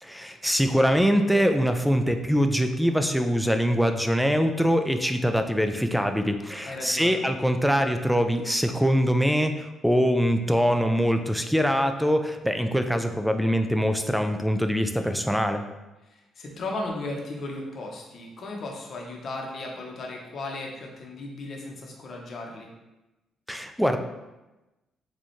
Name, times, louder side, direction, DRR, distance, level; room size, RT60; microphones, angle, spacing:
voice 1, 0.0-15.6 23.5-24.0, equal, ahead, 7 dB, 0.3 m, -23 dB
voice 2, 6.6-7.2 16.1-22.7, left 2 dB, 55° left, 0 dB, 0.8 m, -36 dB
4.1 x 2.3 x 3.1 m, 1.0 s
cardioid pair, 90°, 0 cm